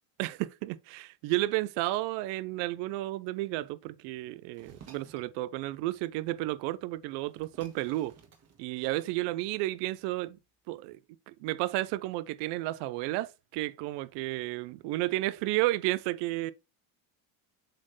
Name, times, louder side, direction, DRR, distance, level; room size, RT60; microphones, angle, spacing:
voice 1, 0.2-8.1 8.6-10.4 10.7-11.0 11.3-16.5, right 18 dB, 75° right, 0.6 m, -32 dB
sound 1, 4.5-5.3 6.7-6.8 7.1-9.2, right 6 dB, 35° right, 1.6 m, -55 dB
7.6 x 4.3 x 3.2 m
cardioid pair, 125°, 43 cm